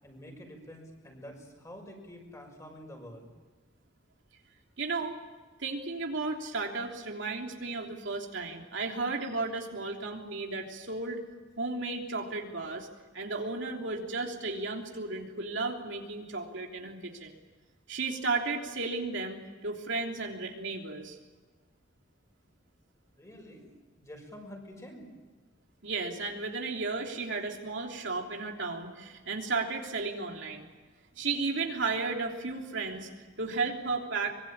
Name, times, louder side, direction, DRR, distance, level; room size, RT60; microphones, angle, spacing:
voice 1, 0.0-3.3 23.2-25.1, equal, 15° left, 2 dB, 6.2 m, -48 dB
voice 2, 4.8-5.2 5.6-11.2 11.6-12.9 13.1-17.3 17.9-21.2 25.8-30.7 31.1-33.1 33.4-34.3, right 3 dB, 70° right, 1 dB, 3.3 m, -34 dB
24.5 x 23.0 x 8.8 m, 1.3 s
head